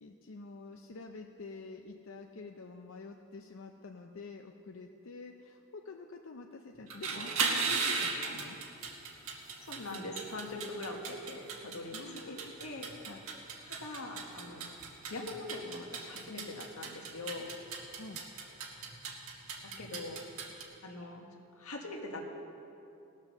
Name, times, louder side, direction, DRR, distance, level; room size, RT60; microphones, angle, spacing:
voice 1, 0.0-8.6 11.9-12.5 13.1-13.2 18.0-18.2, left 3 dB, 65° left, 4 dB, 0.6 m, -48 dB
sound 1, 6.8-20.6, right 4 dB, 85° right, 1.6 m, -37 dB
voice 2, 9.6-12.0 12.2-12.9 13.6-14.7 15.1-17.5 19.8-20.2 20.8-21.3 21.6-22.2, left 2 dB, 90° left, 1 dB, 1.7 m, -42 dB
17.5 x 7.3 x 6.6 m, 2.8 s
head